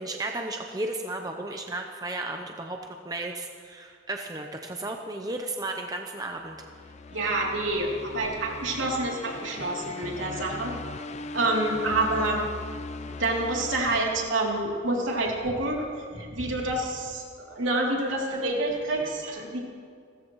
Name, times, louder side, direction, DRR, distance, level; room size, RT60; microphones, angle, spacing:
voice 1, 0.0-6.6, right 2 dB, 20° right, 3 dB, 0.7 m, -34 dB
sound 1, 6.4-14.7, left 3 dB, 35° left, 0.4 m, -40 dB
voice 2, 7.1-10.8 11.3-12.4 13.2-19.6, right 2 dB, 75° right, -2 dB, 3.0 m, -28 dB
29.5 x 14.0 x 3.1 m, 2.2 s
head